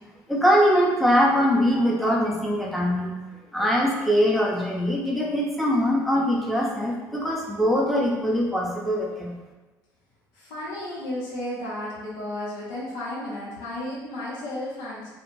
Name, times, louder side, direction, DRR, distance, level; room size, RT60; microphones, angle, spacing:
voice 1, 0.3-3.2 3.5-9.3, equal, ahead, -4 dB, 0.7 m, -22 dB
voice 2, 10.3-15.1, left 1 dB, 80° left, -6 dB, 0.9 m, -33 dB
2.4 x 2.2 x 3.1 m, 1.2 s
hypercardioid pair, 60°, 9 cm